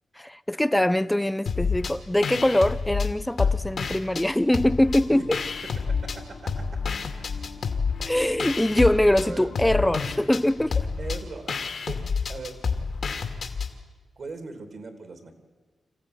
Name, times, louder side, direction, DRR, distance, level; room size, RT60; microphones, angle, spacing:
voice 1, 0.2-5.4 8.0-10.9, left 1 dB, 10° left, 0.7 m, -23 dB
sound 1, 1.5-1.9 2.2-4.3 4.5-6.2 6.5-13.7, left 5 dB, 65° left, 2.4 m, -28 dB
sound 2, 4.8-10.9, left 4 dB, 85° left, 3.5 m, -44 dB
voice 2, 5.9-6.9 8.2-8.4 9.2-9.5 11.0-11.6 11.9-12.0 12.3-12.6 14.2-15.3, right 4 dB, 60° right, 3.1 m, -39 dB
26.5 x 15.0 x 9.9 m
cardioid pair, 85°, 0 cm